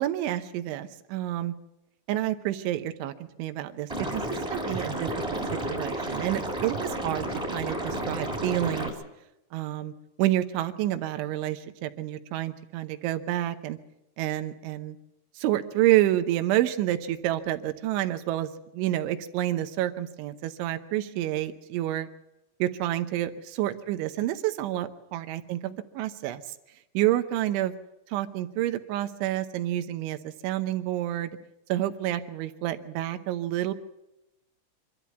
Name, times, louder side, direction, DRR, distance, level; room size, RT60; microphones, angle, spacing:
voice 1, 0.0-1.6 2.1-3.1 3.4-5.4 5.7-8.9 9.5-9.9 10.2-13.8 14.2-15.0 15.4-22.1 22.6-26.4 26.9-27.7 28.1-31.4 31.7-33.7, right 14 dB, 80° right, 9 dB, 3.2 m, -29 dB
Liquid, 3.9-8.9, right 1 dB, 5° right, 2.4 m, -31 dB
25.0 x 13.0 x 8.2 m, 0.89 s
omnidirectional pair, 5.6 m